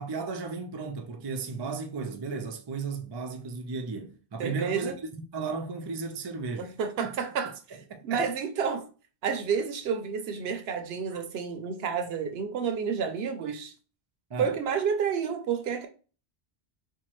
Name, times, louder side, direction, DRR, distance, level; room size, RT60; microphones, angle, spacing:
voice 1, 0.0-6.7 7.0-7.1 7.9-8.3 14.3-14.5, right 4 dB, 40° right, 0.3 m, -35 dB
voice 2, 4.4-5.0 6.6-7.5 8.0-8.8 9.2-13.7 14.4-15.9, right 6 dB, 70° right, 0.8 m, -30 dB
4.4 x 2.2 x 3.0 m
omnidirectional pair, 1.1 m